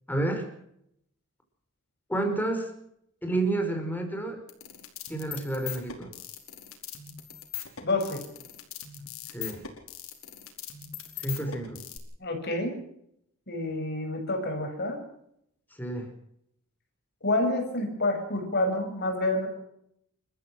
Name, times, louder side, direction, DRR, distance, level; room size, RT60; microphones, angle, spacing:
voice 1, 0.1-0.5 2.1-2.7 3.2-4.4 5.1-6.1 9.3-9.7 11.2-11.8 15.7-16.1, right 2 dB, 10° left, 4 dB, 5.1 m, -30 dB
sound 1, 4.5-12.0, left 10 dB, 75° left, 4.8 m, -40 dB
voice 2, 7.8-8.2 12.2-12.8 13.5-15.0 17.2-19.5, left 2 dB, 50° left, 4 dB, 6.4 m, -28 dB
29.5 x 14.0 x 6.3 m, 0.75 s
head